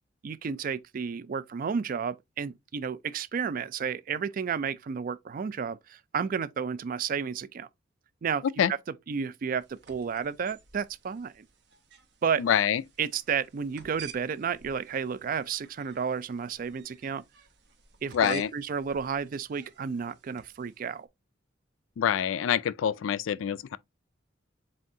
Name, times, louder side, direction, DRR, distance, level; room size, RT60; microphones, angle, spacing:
voice 1, 0.2-7.7 8.2-8.4 8.7-8.8 9.1-11.5 12.2-12.4 13.0-17.2 18.0-21.1, right 6 dB, 45° right, 0.3 m, -32 dB
sound 1, 9.6-20.9, right 8 dB, 60° right, 0.9 m, -52 dB
voice 2, 12.4-12.8 18.1-18.5 22.0-23.8, left 8 dB, 80° left, 0.3 m, -26 dB
7.4 x 2.6 x 2.7 m
head